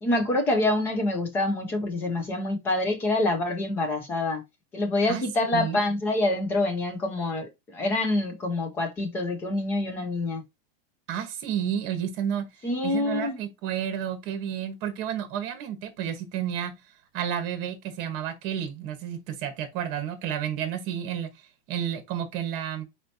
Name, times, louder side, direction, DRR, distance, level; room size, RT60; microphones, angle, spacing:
voice 1, 0.0-4.4 4.7-10.4 12.6-13.4, left 2 dB, 10° left, 0.3 m, -26 dB
voice 2, 11.1-12.5 12.8-16.7 17.1-21.3 21.7-22.8, right 9 dB, 35° right, 1.2 m, -31 dB
4.4 x 4.2 x 2.7 m
supercardioid pair, 180°, 29 cm